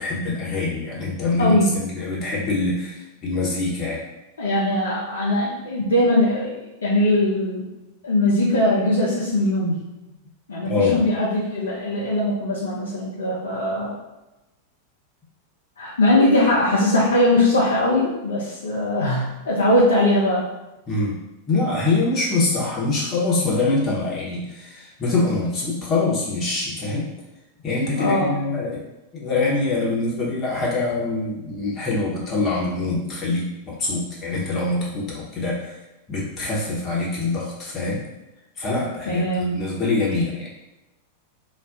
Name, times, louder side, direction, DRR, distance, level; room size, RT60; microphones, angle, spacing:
voice 1, 0.0-4.0 10.6-11.0 20.9-21.2 21.5-27.1 27.6-28.8 29.1-35.8 36.1-38.0 38.6-40.5, left 3 dB, 25° left, -6 dB, 0.9 m, -24 dB
voice 2, 1.4-1.8 4.4-6.6 6.8-7.6 8.0-9.8 10.5-14.0 15.8-20.5 28.0-28.3 39.1-39.6, left 1 dB, 70° left, -6 dB, 0.5 m, -20 dB
2.4 x 2.2 x 3.7 m, 1.0 s
figure-of-eight pair, 90°, 0 cm